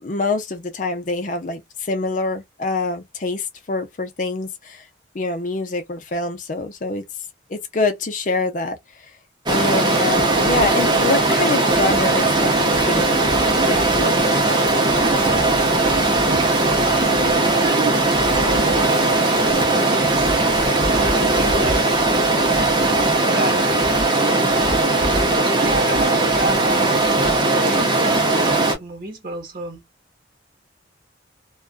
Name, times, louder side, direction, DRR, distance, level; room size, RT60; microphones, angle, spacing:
voice 1, 0.0-4.8 5.1-7.0 7.5-8.8 9.5-13.2 13.7-14.4, left 3 dB, 45° left, 0.5 m, -25 dB
Stream, 9.5-28.7, right 2 dB, 25° right, 0.7 m, -18 dB
voice 2, 17.1-20.3 21.1-21.9 23.2-23.9 24.2-24.7 25.6-29.8, right 2 dB, 50° right, 0.9 m, -30 dB
2.4 x 2.3 x 2.4 m
head